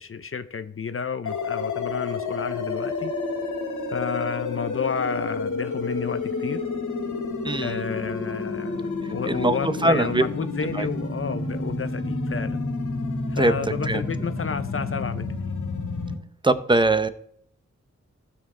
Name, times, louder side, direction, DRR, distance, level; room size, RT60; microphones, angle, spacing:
voice 1, 0.0-3.1 3.9-6.6 7.6-12.6 13.3-15.5, left 6 dB, 45° left, 11 dB, 0.6 m, -31 dB
sound 1, 1.2-16.1, left 3 dB, 80° left, 1.9 m, -30 dB
voice 2, 7.4-7.8 9.2-10.2 10.7-10.9 13.4-13.6 13.9-14.0 16.4-17.1, right 2 dB, 15° right, 12 dB, 0.8 m, -21 dB
15.5 x 6.2 x 3.7 m, 0.66 s
cardioid pair, 65°, 30 cm